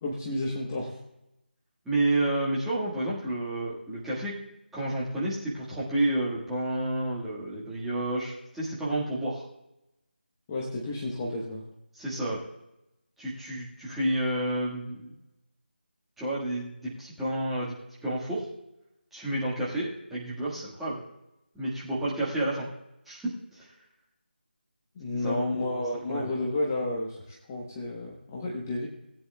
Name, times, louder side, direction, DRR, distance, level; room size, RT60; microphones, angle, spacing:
voice 1, 0.0-1.0 10.5-11.6 25.0-28.9, left 2 dB, 15° left, -2 dB, 1.0 m, -31 dB
voice 2, 1.8-4.4 4.7-9.4 11.9-12.4 13.2-15.1 16.2-17.7 18.0-18.4 19.1-21.0 21.5-22.7 23.1-23.7 25.2-25.8 26.1-26.3, right 1 dB, ahead, -9 dB, 1.6 m, -30 dB
19.5 x 9.4 x 2.2 m, 0.90 s
figure-of-eight pair, 170°, 6 cm